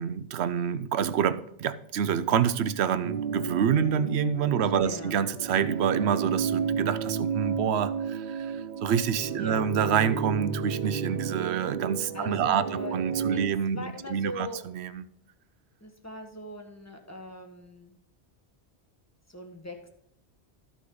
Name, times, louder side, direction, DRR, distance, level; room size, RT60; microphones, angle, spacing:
voice 1, 0.0-15.0, right 8 dB, 90° right, 0.9 m, -27 dB
sound 1, 3.0-13.5, right 6 dB, 55° right, 0.6 m, -32 dB
voice 2, 4.8-5.2 9.3-9.7 12.1-13.0 13.3-13.4 13.7-14.6 15.8-17.9 19.3-19.9, left 1 dB, 15° left, 1.4 m, -40 dB
13.5 x 6.2 x 3.8 m
omnidirectional pair, 1.1 m